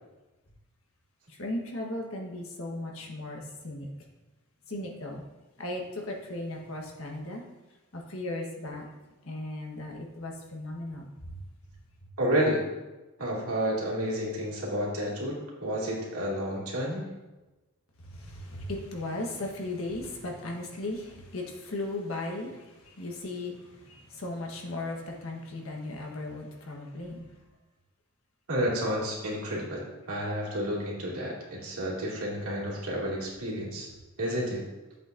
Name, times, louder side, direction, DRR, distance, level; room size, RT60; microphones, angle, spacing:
voice 1, 1.3-4.1 4.7-5.2 5.6-7.4 7.9-11.5 18.0-27.4, left 2 dB, 70° left, 0 dB, 1.3 m, -37 dB
voice 2, 12.2-12.6 13.2-17.1 28.5-33.9 34.2-34.6, equal, 85° right, -4 dB, 2.4 m, -30 dB
8.2 x 7.8 x 2.6 m, 1.1 s
head